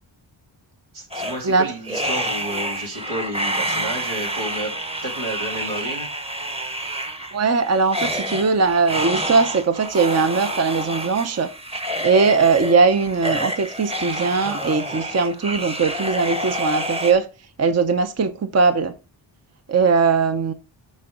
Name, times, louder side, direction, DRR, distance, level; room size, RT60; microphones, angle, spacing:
voice 1, 0.9-4.7 5.0-6.1, right 1 dB, 80° right, 2.8 m, -31 dB
sound 1, 1.1-17.1, right 1 dB, 10° right, 1.0 m, -28 dB
voice 2, 7.3-11.5 12.0-17.3 17.6-18.9 19.7-20.5, right 4 dB, 35° right, 0.7 m, -20 dB
7.4 x 5.4 x 3.9 m
cardioid pair, 75°, 48 cm